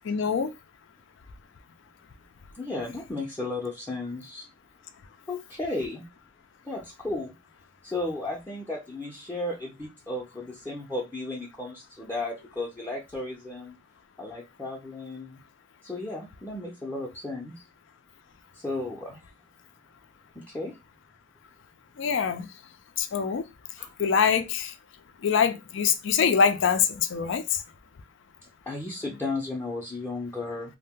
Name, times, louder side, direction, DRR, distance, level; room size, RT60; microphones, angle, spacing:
voice 1, 0.0-0.5 22.0-22.5 23.0-23.5 24.0-24.7 25.2-27.6, left 6 dB, 65° left, 0.4 m, -24 dB
voice 2, 2.5-4.5 5.3-6.0 6.6-7.3 7.8-13.8 14.2-15.4 15.8-17.6 18.5-19.2 20.3-20.8 23.8-23.9 28.7-30.8, left 2 dB, 10° left, 0.5 m, -34 dB
2.6 x 2.1 x 3.5 m
head